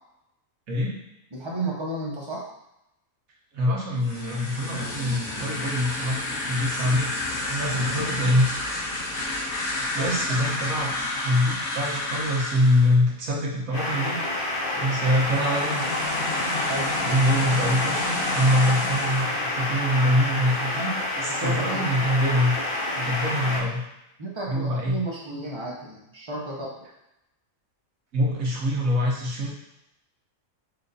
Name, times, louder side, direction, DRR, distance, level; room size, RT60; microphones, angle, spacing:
voice 1, 1.3-2.5 10.0-10.1 16.6-16.9 21.3-21.9 24.2-26.7, right 2 dB, 30° right, -3 dB, 0.6 m, -32 dB
voice 2, 3.5-6.2 6.5-7.1 7.5-8.5 9.9-10.9 11.2-14.2 14.7-15.9 17.0-22.5 22.9-23.8 24.5-25.0 28.1-29.5, left 1 dB, 75° right, -4 dB, 1.5 m, -24 dB
sound 1, 4.0-13.0 15.1-19.4, left 2 dB, 85° left, 1.6 m, -31 dB
sound 2, 13.7-23.6, left 2 dB, 45° left, 1.0 m, -28 dB
4.3 x 2.6 x 3.9 m, 0.86 s
omnidirectional pair, 1.5 m